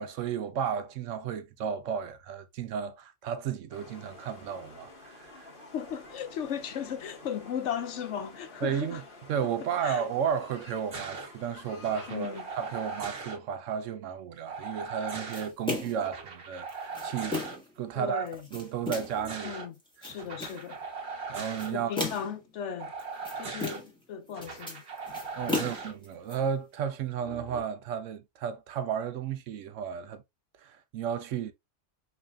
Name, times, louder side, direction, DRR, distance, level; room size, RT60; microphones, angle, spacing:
voice 1, 0.0-5.5 8.6-9.0 9.3-17.4 17.8-19.5 20.0-20.2 21.3-21.9 25.3-30.2 30.6-31.5, right 8 dB, 70° right, 0.9 m, -33 dB
sound 1, 3.7-13.0, left 2 dB, 40° left, 1.6 m, -50 dB
voice 2, 5.7-9.0 9.6-10.1 12.1-12.4 18.0-18.4 19.4-19.7 20.0-20.8 21.7-22.9 23.4-24.8 25.6-25.7, left 8 dB, 65° left, 0.9 m, -36 dB
sound 2, 10.9-11.3 11.8-13.4 14.5-15.5 16.0-17.6 18.9-19.7 20.2-21.7 22.8-23.8 24.3-25.9 27.2-27.6, right 4 dB, 55° right, 1.3 m, -39 dB
sound 3, 15.3-16.1 16.7-17.7 18.3-19.2 19.8-20.7 21.4-22.4 23.0-24.0 24.3-26.3, left 2 dB, 5° left, 1.6 m, -35 dB
5.2 x 3.3 x 2.3 m
omnidirectional pair, 1.4 m